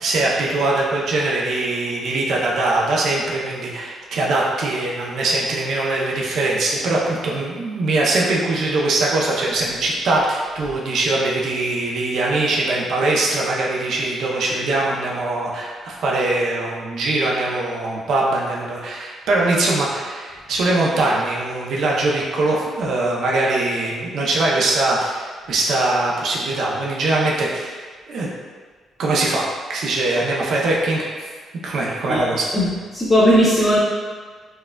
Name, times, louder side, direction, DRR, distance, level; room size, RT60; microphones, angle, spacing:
voice 1, 0.0-27.8 28.1-28.3 29.0-29.4 29.7-31.1 31.6-32.5, right 2 dB, 65° right, -3 dB, 0.5 m, -22 dB
voice 2, 32.5-33.8, equal, 10° left, -9 dB, 0.5 m, -17 dB
4.2 x 2.3 x 2.2 m, 1.5 s
cardioid pair, 135°, 0 cm